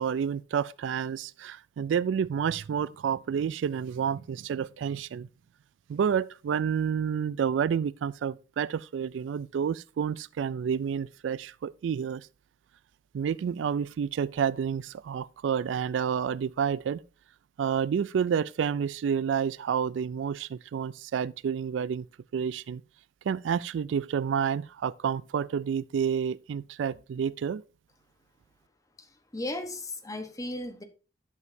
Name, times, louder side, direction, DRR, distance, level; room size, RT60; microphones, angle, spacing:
voice 1, 0.0-5.3 5.9-12.3 13.1-17.0 17.6-22.1 22.3-22.8 23.2-27.6, right 7 dB, 75° right, 0.3 m, -29 dB
voice 2, 29.0-30.8, left 1 dB, 20° left, 1.1 m, -36 dB
11.0 x 7.0 x 2.7 m
head